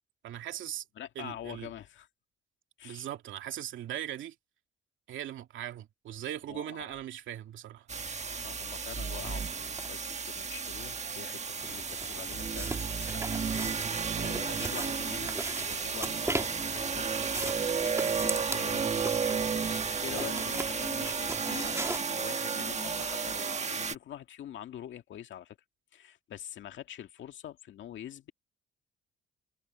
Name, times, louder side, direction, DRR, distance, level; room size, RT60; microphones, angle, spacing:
voice 1, 0.2-0.8 1.2-1.7 2.8-4.3 5.1-7.9, right 11 dB, 75° right, 2.6 m, -39 dB
voice 2, 1.0-2.1 2.8-3.1 6.5-7.0 8.4-17.1 17.5-21.8 22.1-25.6 25.9-28.3, left 11 dB, 70° left, 2.0 m, -45 dB
sound 1, 7.9-23.9, right 5 dB, 35° right, 1.4 m, -33 dB
sound 2, 9.2-9.3 9.8-9.9 11.6-22.0, right 2 dB, 15° right, 2.5 m, -39 dB
cardioid pair, 90°, 20 cm